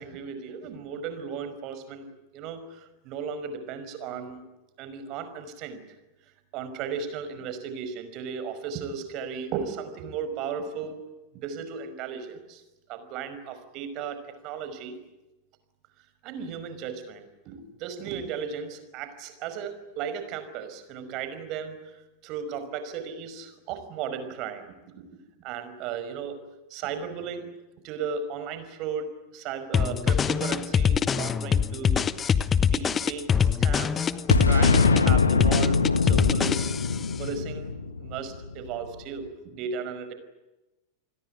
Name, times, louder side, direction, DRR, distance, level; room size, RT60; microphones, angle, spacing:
voice 1, 0.0-2.1 2.3-4.4 4.8-5.8 6.5-11.0 11.3-12.6 12.9-15.0 16.2-21.8 22.2-24.7 25.0-25.1 25.4-26.4 26.7-27.5 27.8-29.1 29.3-32.0 32.6-34.1 34.4-36.7 37.2-37.7 38.0-40.1, right 6 dB, 40° right, 10 dB, 5.4 m, -35 dB
sound 1, 29.7-37.0, left 7 dB, 20° left, 1.1 m, -24 dB
Boom, 34.3-39.0, left 4 dB, 75° left, 1.7 m, -23 dB
29.0 x 21.0 x 9.4 m, 1.0 s
figure-of-eight pair, 90°, 0 cm